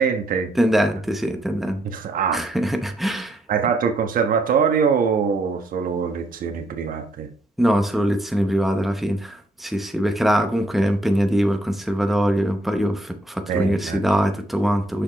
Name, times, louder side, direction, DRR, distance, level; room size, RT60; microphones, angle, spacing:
voice 1, 0.0-0.5 1.8-2.4 3.5-7.3 13.5-14.0, right 6 dB, 55° right, 6 dB, 1.3 m, -23 dB
voice 2, 0.5-1.8 2.3-3.4 7.6-15.0, equal, ahead, 5 dB, 0.8 m, -22 dB
6.5 x 5.7 x 3.1 m, 0.41 s
cardioid pair, 110°, 17 cm